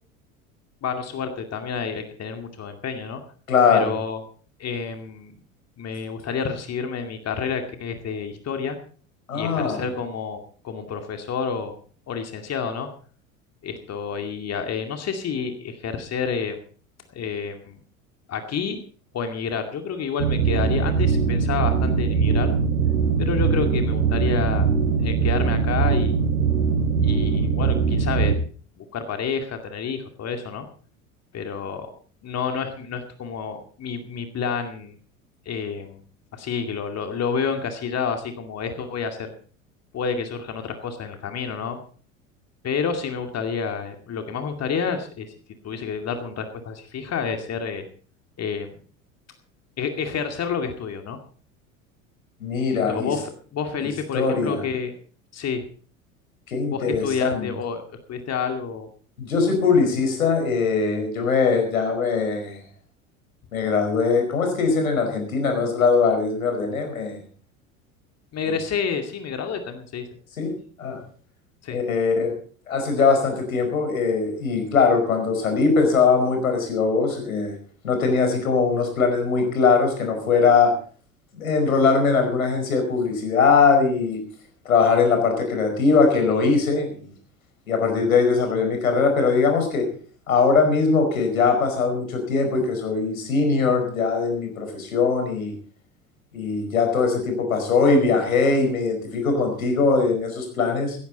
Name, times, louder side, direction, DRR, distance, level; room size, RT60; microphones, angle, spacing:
voice 1, 0.8-3.2 3.7-4.2 4.6-5.4 5.8-8.8 9.3-11.7 12.1-12.9 13.6-16.6 17.1-17.8 18.3-18.8 19.1-22.5 23.2-24.7 25.0-26.2 27.0-28.3 28.8-30.7 31.3-31.9 32.2-34.9 35.5-36.0 36.3-39.3 39.9-41.8 42.6-45.3 45.6-47.9 48.4-48.7 49.8-51.2 52.9-54.9 55.3-55.7 56.7-58.9 68.3-70.1 71.6-71.8, left 6 dB, 35° left, 6 dB, 2.4 m, -29 dB
voice 2, 3.5-3.9 9.3-9.9 52.4-53.1 53.8-54.6 56.5-57.5 59.2-62.6 63.5-67.2 70.4-70.5 70.8-71.0 71.7-72.3 72.7-77.5 77.8-80.7 81.3-84.2 84.6-87.1 87.7-89.9 90.3-95.5 96.3-101.0, left 4 dB, 80° left, 5 dB, 5.1 m, -21 dB
sound 1, 20.2-28.4, right 5 dB, 85° right, 1.7 m, -21 dB
17.0 x 14.0 x 4.1 m, 0.43 s
figure-of-eight pair, 75°, 42 cm